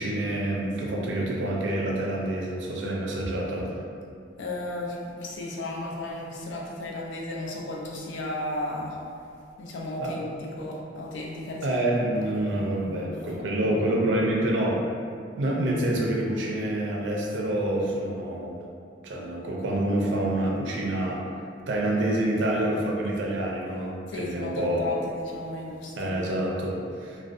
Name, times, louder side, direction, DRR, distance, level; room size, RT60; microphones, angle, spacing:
voice 1, 0.0-3.7 10.0-10.1 11.6-14.8 15.4-18.6 19.0-21.2 21.7-24.9 26.0-27.2, right 1 dB, 80° right, -2 dB, 0.4 m, -27 dB
voice 2, 4.4-9.0 9.6-13.4 24.1-26.3, left 1 dB, 90° left, -2 dB, 0.4 m, -35 dB
2.5 x 2.1 x 2.3 m, 2.4 s
head